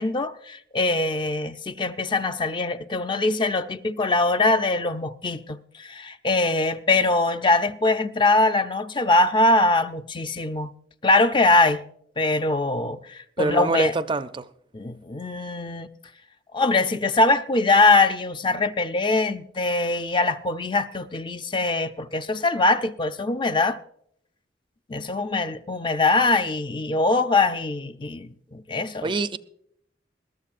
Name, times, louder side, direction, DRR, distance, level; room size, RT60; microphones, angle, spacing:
voice 1, 0.0-10.7 11.0-11.9 12.2-13.9 14.7-15.9 16.5-23.8 24.9-29.1, left 2 dB, 25° left, 0.5 m, -22 dB
voice 2, 13.4-14.5 29.0-29.4, right 3 dB, 25° right, 0.4 m, -25 dB
21.0 x 13.0 x 2.5 m
head